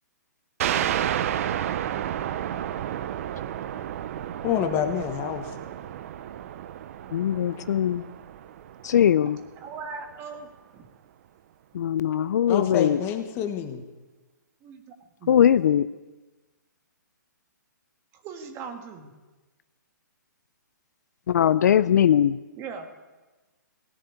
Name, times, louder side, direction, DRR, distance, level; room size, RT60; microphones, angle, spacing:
sound 1, 0.6-9.8, right 10 dB, 45° right, 0.7 m, -31 dB
voice 1, 4.4-5.5 12.5-13.8, left 9 dB, 25° left, 7 dB, 1.3 m, -27 dB
voice 2, 7.1-8.0 8.8-9.4 11.7-13.0 15.3-15.9 21.3-22.4, left 9 dB, 60° left, 16 dB, 0.5 m, -20 dB
voice 3, 9.6-10.9 14.6-14.9 15.2-15.3 18.1-19.1 22.6-22.9, right 5 dB, 25° right, 5 dB, 1.7 m, -39 dB
18.0 x 7.0 x 9.6 m, 1.2 s
hypercardioid pair, 145°, 10 cm